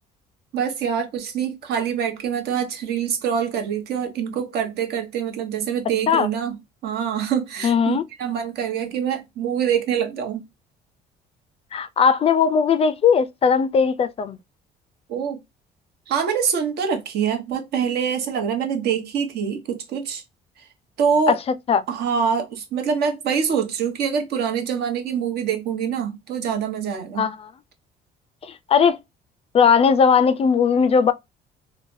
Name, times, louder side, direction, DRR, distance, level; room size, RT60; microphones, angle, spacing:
voice 1, 0.5-10.4 15.1-15.4 16.1-20.2 20.6-20.7 21.0-21.4 21.9-27.3, right 7 dB, 70° right, 0.9 m, -25 dB
voice 2, 7.6-8.0 11.7-14.4 21.3-21.4 21.7-21.8 27.2-27.5 28.4-29.0 29.5-31.1, left 6 dB, 35° left, 0.3 m, -18 dB
3.2 x 2.1 x 2.5 m
cardioid pair, 110°, 17 cm